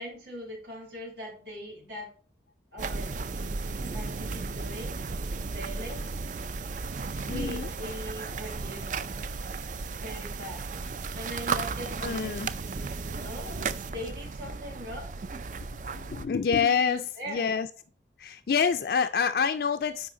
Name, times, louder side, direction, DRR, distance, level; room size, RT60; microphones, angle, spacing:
voice 1, 0.0-2.1 2.7-3.2 3.9-5.0 5.4-6.0 7.2-8.9 9.9-10.6 11.1-15.1 16.7-17.5, equal, 75° right, -3 dB, 3.0 m, -41 dB
sound 1, 2.8-16.2, right 4 dB, 45° right, 0.4 m, -34 dB
voice 2, 7.2-7.7 12.0-12.5 15.9-17.0 17.3-17.7 18.2-20.1, left 6 dB, 55° left, 6 dB, 0.4 m, -27 dB
8.7 x 4.9 x 3.7 m, 0.41 s
head